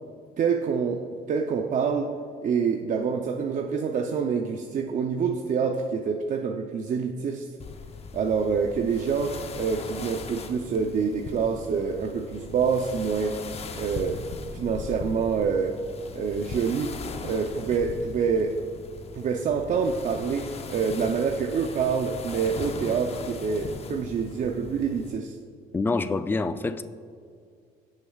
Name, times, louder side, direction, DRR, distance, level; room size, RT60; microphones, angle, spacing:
voice 1, 0.4-2.1 2.4-7.5 8.1-13.4 13.8-14.2 14.5-15.8 16.1-16.9 17.2-18.6 19.2-25.4, right 6 dB, 50° right, 3 dB, 0.6 m, -26 dB
sound 1, 7.6-25.2, left 4 dB, 35° left, 0.7 m, -39 dB
voice 2, 25.7-26.8, left 3 dB, 10° left, 10 dB, 0.4 m, -26 dB
16.5 x 6.5 x 2.4 m, 2.2 s
cardioid pair, 110°, 17 cm